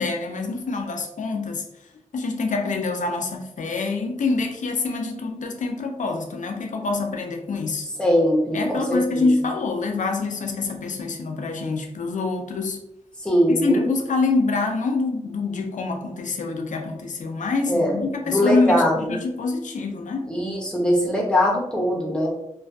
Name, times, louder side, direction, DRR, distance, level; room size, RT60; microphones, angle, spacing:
voice 1, 0.0-1.7 2.1-7.9 8.5-12.8 13.5-20.3, left 3 dB, 80° left, 4 dB, 0.4 m, -26 dB
voice 2, 8.0-9.3 13.2-13.9 17.7-18.0 18.2-19.1 20.3-22.3, equal, 5° left, -3 dB, 0.7 m, -21 dB
2.5 x 2.3 x 2.3 m, 0.83 s
wide cardioid pair, 105°, 13 cm